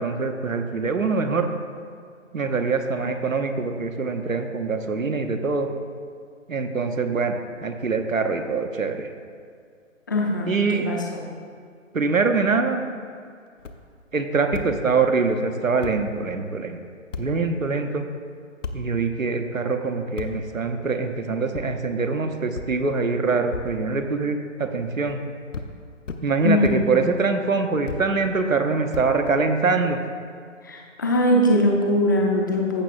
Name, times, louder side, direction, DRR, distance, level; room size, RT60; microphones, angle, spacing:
voice 1, 0.0-1.5 2.3-5.7 6.5-9.1 10.5-10.8 11.9-12.8 14.1-16.8 17.2-18.0 18.7-25.2 26.2-30.0, right 4 dB, 85° right, 6 dB, 0.9 m, -24 dB
voice 2, 10.1-11.2 26.4-26.8 30.6-32.8, left 1 dB, 15° left, 0 dB, 0.5 m, -21 dB
sound 1, 13.6-13.8 14.5-14.7 15.5-15.6 15.8-16.0 17.1-17.3 18.6-18.8 20.2-20.3 21.5-21.7 22.5-22.7 23.5-23.7 24.8-25.2 25.5-25.7 26.1-26.2 26.6-26.8 27.9-28.0 28.9-29.6, left 4 dB, 70° left, 0.8 m, -33 dB
14.5 x 7.2 x 2.5 m, 2.2 s
figure-of-eight pair, 130°, 39 cm